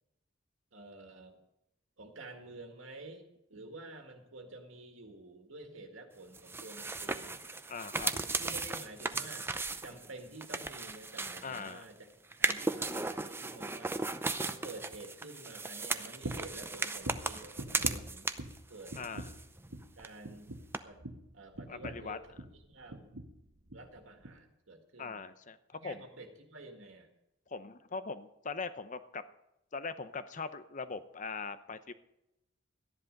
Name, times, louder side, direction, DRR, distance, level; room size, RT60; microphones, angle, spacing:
voice 1, 0.7-1.4 2.0-7.5 8.1-9.5 9.8-12.0 12.4-14.0 14.4-18.3 18.7-19.0 20.0-20.5 20.8-21.0 21.3-23.1 23.7-25.2 25.7-27.1, right 2 dB, 80° right, 3 dB, 2.0 m, -50 dB
sound 1, 6.3-11.8 12.3-18.6 18.9-19.7 20.0-20.1 20.7-20.8, right 3 dB, 10° right, 0.6 m, -36 dB
voice 2, 7.7-8.1 11.4-11.8 19.0-19.3 21.7-22.2 25.0-26.0 27.5-29.2 29.7-31.9, left 4 dB, 40° left, 12 dB, 0.8 m, -41 dB
sound 2, 16.2-16.6 17.0-18.6 18.9-19.4 19.7-20.0 20.2-22.6 22.9-23.4 23.7-23.9 24.2-24.4, right 1 dB, 65° right, 1.2 m, -43 dB
14.0 x 10.5 x 5.3 m, 0.86 s
head